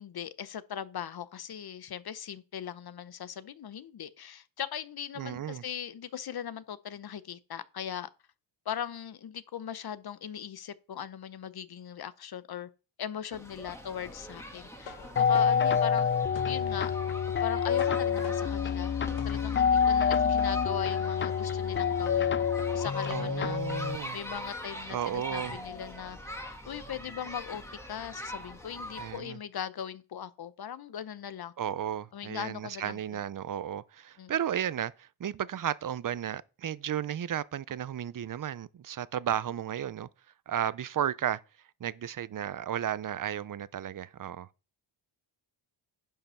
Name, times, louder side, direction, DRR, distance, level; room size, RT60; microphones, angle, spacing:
voice 1, 0.0-8.1 8.7-12.7 13.0-16.1 16.5-16.9 17.4-19.0 19.2-22.3 22.7-23.6 24.1-26.2 26.6-27.6 27.9-31.5 32.1-33.0 34.2-34.3, left 9 dB, 50° left, 0.8 m, -39 dB
voice 2, 5.2-5.6 23.1-24.2 24.9-25.6 29.0-29.4 31.6-40.1 40.5-41.4 41.8-44.5, right 10 dB, 45° right, 0.6 m, -34 dB
sound 1, 13.3-29.2, equal, 5° left, 1.7 m, -43 dB
sound 2, 14.4-19.9, left 7 dB, 65° left, 1.3 m, -46 dB
sound 3, 15.2-24.0, left 7 dB, 25° left, 0.4 m, -27 dB
10.5 x 5.5 x 5.6 m
wide cardioid pair, 105°, 48 cm